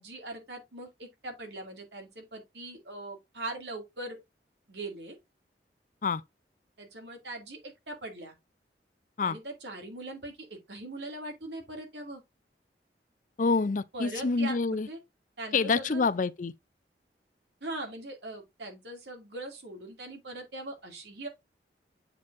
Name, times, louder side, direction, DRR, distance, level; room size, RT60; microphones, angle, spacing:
voice 1, 0.0-4.2 4.7-5.2 6.8-8.3 9.2-12.2 13.9-15.0 15.4-16.0 17.6-21.3, right 2 dB, 75° right, 2.5 m, -41 dB
voice 2, 13.4-14.9 15.5-16.5, left 4 dB, 45° left, 0.4 m, -27 dB
8.2 x 5.3 x 2.6 m
head